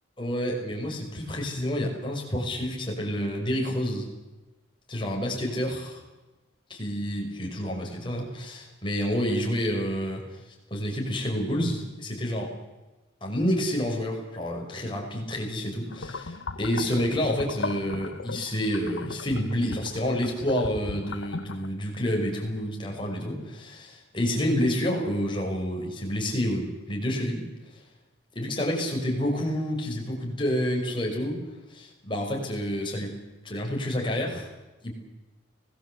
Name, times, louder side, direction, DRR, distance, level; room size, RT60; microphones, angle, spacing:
voice 1, 0.2-4.1 4.9-6.0 6.7-10.4 10.7-12.5 13.2-27.4 28.3-31.4 31.7-33.1 33.4-34.5 34.8-34.9, equal, 25° left, -1 dB, 6.2 m, -29 dB
sound 1, 15.9-21.7, left 3 dB, 70° left, 1.1 m, -37 dB
24.5 x 19.0 x 8.2 m, 1.1 s
head